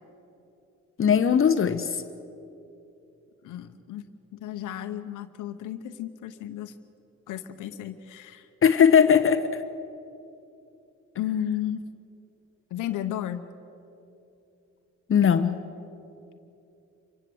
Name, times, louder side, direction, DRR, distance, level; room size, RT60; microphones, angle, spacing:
voice 1, 1.0-2.0 8.6-9.5 15.1-15.6, left 7 dB, 45° left, 10 dB, 1.0 m, -19 dB
voice 2, 3.4-4.1 4.3-6.7 7.3-8.5 11.2-11.8 12.7-13.5, left 11 dB, 85° left, 8 dB, 1.0 m, -33 dB
27.5 x 16.0 x 7.8 m, 2.8 s
cardioid pair, 90°, 30 cm